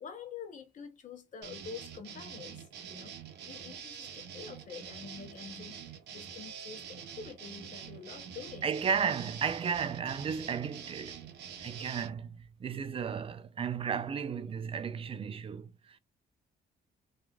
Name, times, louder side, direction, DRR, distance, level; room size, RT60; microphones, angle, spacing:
voice 1, 0.0-3.2 3.5-9.0 12.7-12.8, left 6 dB, 45° left, 0.7 m, -47 dB
sound 1, 1.4-12.1, right 8 dB, 90° right, 0.7 m, -46 dB
voice 2, 8.6-11.2 11.6-16.0, right 6 dB, 35° right, 0.3 m, -34 dB
3.0 x 2.3 x 2.3 m
cardioid pair, 115°, 17 cm